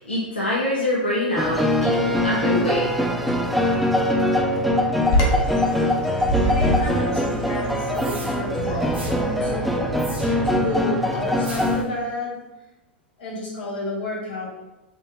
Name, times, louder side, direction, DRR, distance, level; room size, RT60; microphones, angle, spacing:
voice 1, 0.0-2.9, left 1 dB, 90° left, -8 dB, 1.0 m, -24 dB
sound 1, 1.4-11.8, left 1 dB, ahead, 0.4 m, -22 dB
Bird vocalization bird call bird song, 5.0-10.7, equal, 50° left, 1.0 m, -27 dB
voice 2, 6.4-9.9 10.4-12.4 13.2-14.5, left 1 dB, 65° left, -4 dB, 1.3 m, -31 dB
sound 2, 7.9-8.4 8.9-9.2 10.0-10.6 11.4-11.8, right 1 dB, 85° right, 1.1 m, -38 dB
4.3 x 3.1 x 2.3 m, 1.0 s
figure-of-eight pair, 95°, 6 cm